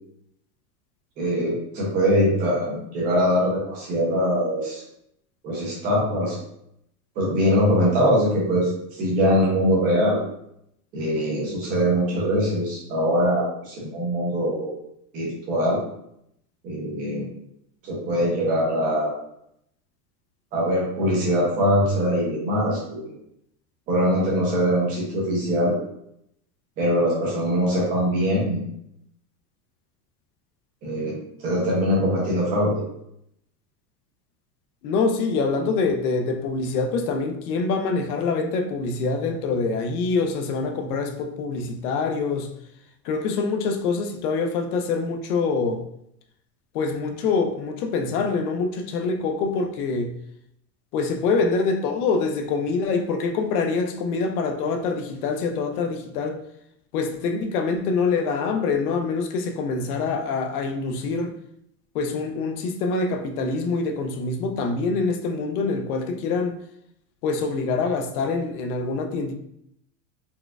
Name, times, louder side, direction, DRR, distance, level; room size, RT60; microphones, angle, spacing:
voice 1, 1.2-4.8 5.4-6.4 7.2-10.2 10.9-14.7 15.1-15.8 16.6-17.3 17.8-19.1 20.5-23.1 23.9-25.7 26.8-28.7 30.8-31.2 31.4-32.8, equal, 20° right, 0.5 m, -22 dB
voice 2, 34.8-42.5 43.1-45.8 46.7-50.1 50.9-56.4 56.9-61.3 61.9-66.6 67.2-69.3, left 4 dB, 75° left, 0.6 m, -25 dB
4.2 x 2.3 x 2.3 m
supercardioid pair, 180°, 45 cm